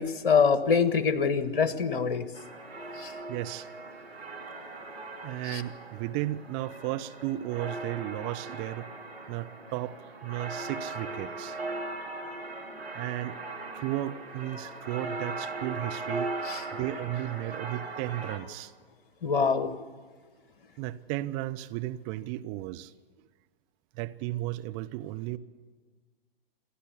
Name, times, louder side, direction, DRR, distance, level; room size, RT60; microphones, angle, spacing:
voice 1, 0.0-2.3 3.0-3.1 5.5-5.6 16.4-16.6 19.2-19.7, left 5 dB, 60° left, 11 dB, 1.5 m, -25 dB
sound 1, 2.3-18.4, right 2 dB, 80° right, 2.9 m, -39 dB
voice 2, 3.3-3.7 5.2-8.9 9.3-11.6 12.9-13.4 13.7-16.3 16.7-18.7 20.8-22.9 24.0-25.4, right 15 dB, 25° right, 10 dB, 0.6 m, -34 dB
28.0 x 11.5 x 8.2 m, 1.5 s
figure-of-eight pair, 115°, 30 cm